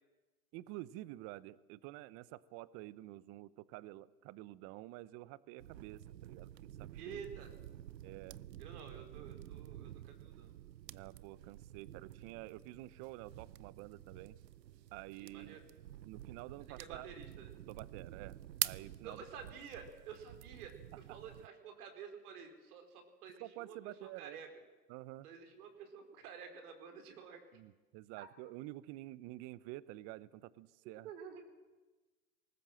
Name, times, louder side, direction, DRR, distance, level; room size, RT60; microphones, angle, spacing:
voice 1, 0.5-6.5 6.8-7.2 8.0-8.4 10.9-14.4 14.9-15.6 16.0-17.1 17.7-18.4 18.6-19.2 23.4-24.4 24.9-25.3 27.5-31.1, right 17 dB, 30° right, 20 dB, 0.7 m, -49 dB
sound 1, 5.6-21.5, right 12 dB, 85° right, 0.7 m, -48 dB
voice 2, 7.0-7.5 8.6-10.5 15.2-15.6 16.8-17.5 19.0-24.6 25.2-27.6 28.2-28.3 31.0-31.4, right 6 dB, 65° right, 5 dB, 4.4 m, -50 dB
20.0 x 18.5 x 7.7 m, 1.2 s
hypercardioid pair, 120°, 49 cm